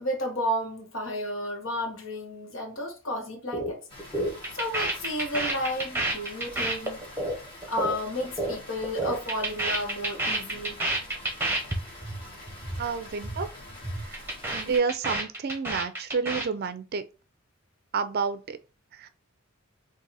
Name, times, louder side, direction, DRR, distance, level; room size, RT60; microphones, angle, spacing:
voice 1, 0.0-3.8 4.5-7.1 7.7-10.8, equal, 70° left, 1.2 m, -32 dB
sound 1, 3.5-3.7 4.0-8.6 8.8-11.8 12.0-12.2 12.5-12.8 13.1-13.4 13.7-16.5, right 2 dB, 10° right, 1.0 m, -29 dB
Water, 3.9-14.8, left 1 dB, 25° left, 1.9 m, -46 dB
voice 2, 12.8-13.5 14.0-14.2 14.5-17.0 17.9-18.6 18.9-19.1, right 5 dB, 50° right, 0.4 m, -29 dB
3.9 x 2.6 x 4.0 m
head